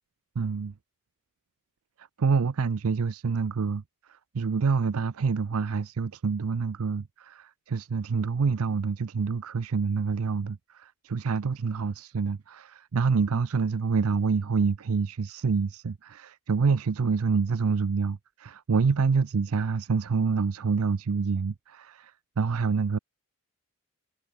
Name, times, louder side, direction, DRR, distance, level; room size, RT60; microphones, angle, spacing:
voice 1, 0.4-0.7 2.0-3.8 4.1-23.0, right 5 dB, 70° right, 0.5 m, -27 dB
head